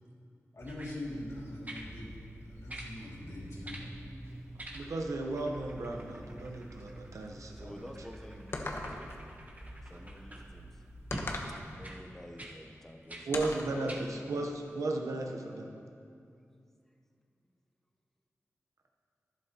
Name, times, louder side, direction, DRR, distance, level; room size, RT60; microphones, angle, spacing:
voice 1, 0.5-2.2 2.5-3.8, left 1 dB, 65° left, -5 dB, 2.4 m, -42 dB
sound 1, 0.6-11.8, right 1 dB, 50° right, 1.4 m, -50 dB
sound 2, 0.7-1.0 1.7-1.9 2.7-2.9 3.6-3.9 4.6-5.1 5.4-10.5 11.1-11.3 11.8-12.0 12.4-12.6 13.1-13.3 13.9-14.1 14.7-14.8, right 1 dB, 30° right, 1.4 m, -47 dB
voice 2, 4.7-7.7 13.3-15.7, right 2 dB, 80° right, 2 dB, 0.9 m, -35 dB
voice 3, 7.5-9.2 9.8-10.8 11.6-14.5 16.6-16.7, equal, 5° left, 2 dB, 0.9 m, -51 dB
sound 3, 8.5-9.2 11.1-11.6 13.3-13.8, left 2 dB, 50° left, 1.0 m, -37 dB
11.5 x 11.0 x 3.0 m, 2.4 s
cardioid pair, 55°, 5 cm